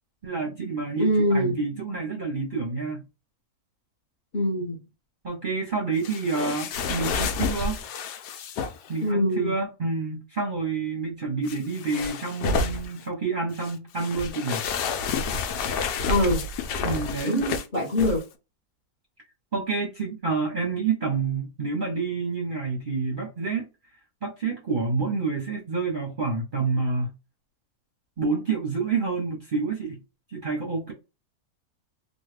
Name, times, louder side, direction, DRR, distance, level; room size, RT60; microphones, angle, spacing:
voice 1, 0.2-3.0 5.2-7.8 8.9-14.6 16.8-17.4 19.5-23.6 24.2-27.1 28.2-30.0 30.3-30.9, right 4 dB, 40° right, 0.7 m, -28 dB
voice 2, 1.0-1.6 4.3-4.8 9.0-9.5 16.1-16.4 17.2-18.2, equal, 40° left, 0.7 m, -23 dB
sound 1, 6.0-8.9 11.5-13.0 13.6-18.2, left 4 dB, 80° left, 1.2 m, -29 dB
3.1 x 2.2 x 3.2 m
omnidirectional pair, 1.7 m